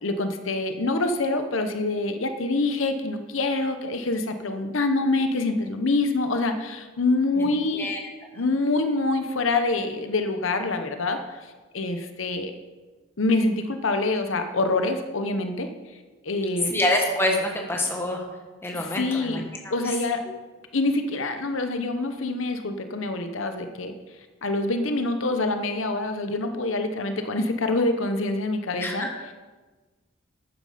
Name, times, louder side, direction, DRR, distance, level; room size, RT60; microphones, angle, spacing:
voice 1, 0.0-7.9 8.3-11.4 11.7-12.5 13.2-15.7 16.2-16.8 18.7-19.4 19.7-20.2 20.7-23.9 24.4-29.3, left 2 dB, 80° left, 7 dB, 1.0 m, -26 dB
voice 2, 16.7-18.2 18.6-19.4 28.8-29.1, left 1 dB, 10° left, 1 dB, 1.6 m, -25 dB
12.0 x 9.3 x 5.1 m, 1.3 s
head